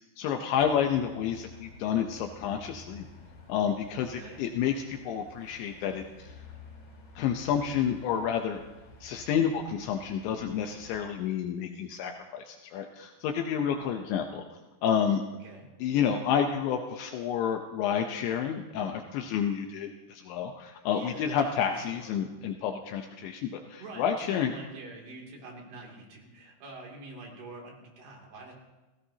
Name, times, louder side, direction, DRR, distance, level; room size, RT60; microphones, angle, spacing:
voice 1, 0.2-3.1 3.5-6.4 7.2-8.6 9.0-14.4 14.8-15.2 15.8-24.5, left 8 dB, 80° left, 3 dB, 3.1 m, -30 dB
sound 1, 0.6-11.0, left 2 dB, 45° left, 5.5 m, -51 dB
voice 2, 20.9-22.2 23.8-28.5, right 2 dB, 60° right, -1 dB, 4.7 m, -45 dB
29.5 x 16.5 x 2.9 m, 1.1 s
omnidirectional pair, 5.4 m